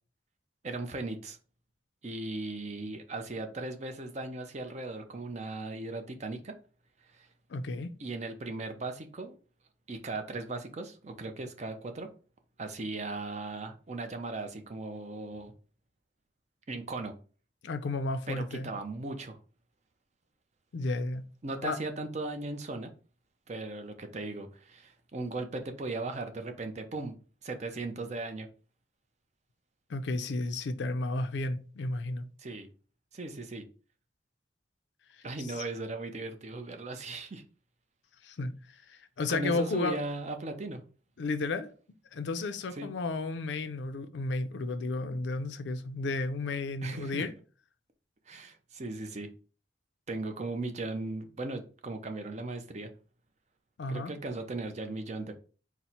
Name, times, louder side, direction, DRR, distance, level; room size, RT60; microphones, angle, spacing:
voice 1, 0.6-1.4 2.0-6.5 7.0-7.3 8.0-9.4 9.9-12.1 12.6-15.5 16.7-17.1 18.3-19.4 21.4-22.9 23.5-27.1 27.4-28.5 32.4-32.7 33.1-33.6 35.2-37.4 39.3-40.8 42.7-42.9 46.8-47.3 48.3-49.3 50.1-52.9 53.9-55.3, right 2 dB, 40° right, 0.5 m, -37 dB
voice 2, 7.5-7.9 17.6-18.7 20.7-21.2 21.6-21.8 29.9-32.3 35.6-35.7 38.2-38.5 38.9-40.0 41.2-41.7 42.1-47.3 53.8-54.1, left 2 dB, 80° left, 0.5 m, -33 dB
4.1 x 2.1 x 4.3 m
head